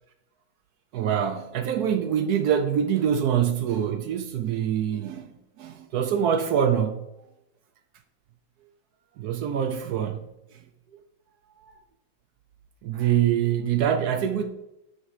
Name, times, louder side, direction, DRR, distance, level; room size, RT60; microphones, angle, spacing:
voice 1, 0.9-7.1 9.2-10.6 11.6-11.7 12.8-14.4, right 9 dB, 70° right, 0.9 m, -25 dB
8.7 x 3.8 x 4.7 m
omnidirectional pair, 2.0 m